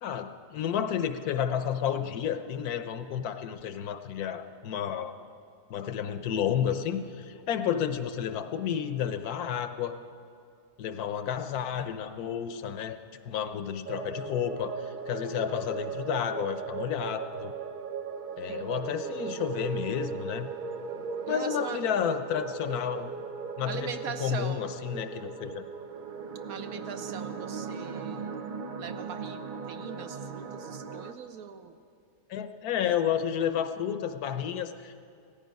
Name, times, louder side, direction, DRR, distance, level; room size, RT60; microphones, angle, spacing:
voice 1, 0.0-5.1 5.7-10.0 10.8-13.0 13.2-17.5 18.4-20.5 21.3-23.1 23.6-25.6 32.3-35.0, left 9 dB, 70° left, 9 dB, 1.1 m, -31 dB
sound 1, 13.9-31.1, right 5 dB, 85° right, 0.4 m, -38 dB
voice 2, 18.5-18.9 21.3-21.8 23.6-24.6 26.5-28.4 28.8-31.8, right 7 dB, 70° right, 9 dB, 1.0 m, -40 dB
17.0 x 14.0 x 5.2 m, 2.4 s
omnidirectional pair, 1.8 m